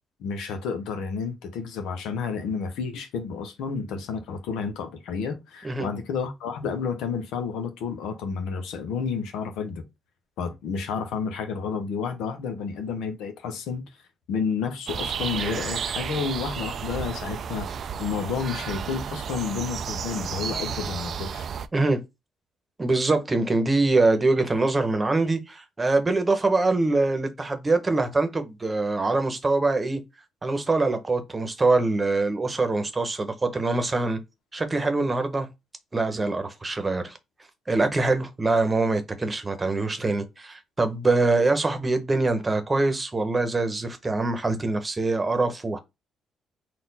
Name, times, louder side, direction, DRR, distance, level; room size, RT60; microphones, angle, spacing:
voice 1, 0.2-9.8 10.4-13.8 14.3-17.7 18.0-21.4, left 5 dB, 90° left, 0.8 m, -30 dB
sound 1, 14.9-21.7, right 7 dB, 60° right, 0.4 m, -32 dB
voice 2, 22.8-30.0 30.4-34.2 34.5-35.5 35.9-37.2 37.7-45.8, right 3 dB, 25° right, 0.9 m, -24 dB
4.2 x 2.4 x 4.0 m
cardioid pair, 90°, 0 cm